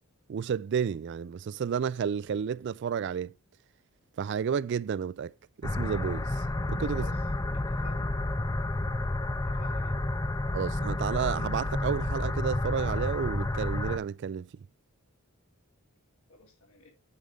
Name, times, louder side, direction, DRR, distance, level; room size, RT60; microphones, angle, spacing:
voice 1, 0.3-3.3 4.2-5.3 5.6-6.4 6.7-7.1 10.5-14.5, right 7 dB, 55° right, 0.3 m, -31 dB
sound 1, 5.6-14.0, left 2 dB, 15° left, 0.4 m, -30 dB
voice 2, 7.5-8.1 9.4-10.0 16.3-16.9, left 3 dB, 75° left, 3.3 m, -52 dB
9.6 x 5.4 x 3.5 m
head